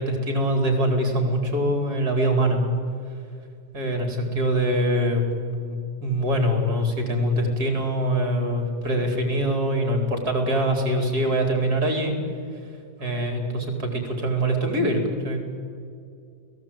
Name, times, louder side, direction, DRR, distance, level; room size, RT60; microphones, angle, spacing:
voice 1, 0.0-2.8 3.7-12.1 13.0-15.5, right 1 dB, 55° right, 3 dB, 4.8 m, -24 dB
30.0 x 18.5 x 8.9 m, 2.4 s
omnidirectional pair, 1.9 m